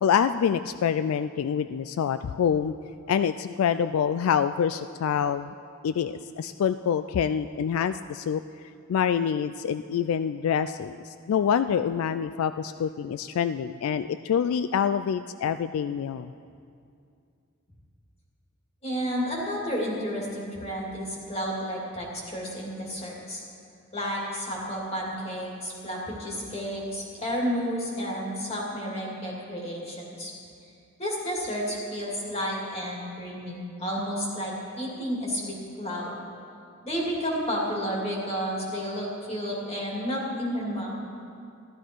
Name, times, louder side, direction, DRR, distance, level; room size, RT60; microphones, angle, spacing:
voice 1, 0.0-2.7 3.1-5.5 5.8-8.4 8.9-16.3, left 7 dB, 80° left, 12 dB, 0.3 m, -26 dB
voice 2, 18.8-23.4 23.9-30.3 31.0-36.2 36.8-41.0, equal, 30° left, -3 dB, 2.6 m, -31 dB
14.5 x 12.5 x 4.6 m, 2.4 s
head